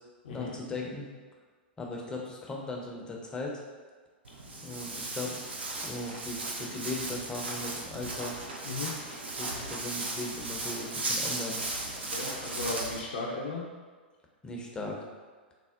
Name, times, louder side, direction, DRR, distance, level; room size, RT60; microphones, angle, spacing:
voice 1, 0.3-1.1 1.8-3.6 4.6-5.4 5.8-8.4 9.4-11.6 14.4-15.0, left 2 dB, 15° left, -1 dB, 0.5 m, -38 dB
Walk footsteps, 4.2-13.0, right 2 dB, 80° right, 0.4 m, -36 dB
voice 2, 12.1-13.6, left 3 dB, 70° left, -3 dB, 0.5 m, -36 dB
3.4 x 2.0 x 2.4 m, 1.5 s
figure-of-eight pair, 100°, 6 cm